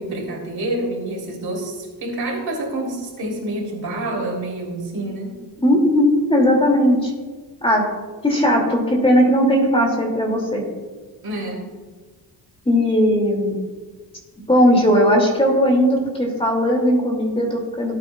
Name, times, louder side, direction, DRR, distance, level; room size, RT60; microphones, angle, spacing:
voice 1, 0.0-1.7 2.0-5.4 11.2-11.7, right 1 dB, 65° right, -1 dB, 3.3 m, -27 dB
voice 2, 5.6-7.1 7.6-7.9 8.2-10.6 12.6-13.6 14.5-17.9, equal, 15° left, -1 dB, 2.6 m, -17 dB
17.0 x 8.4 x 2.4 m, 1.4 s
cardioid pair, 105°, 41 cm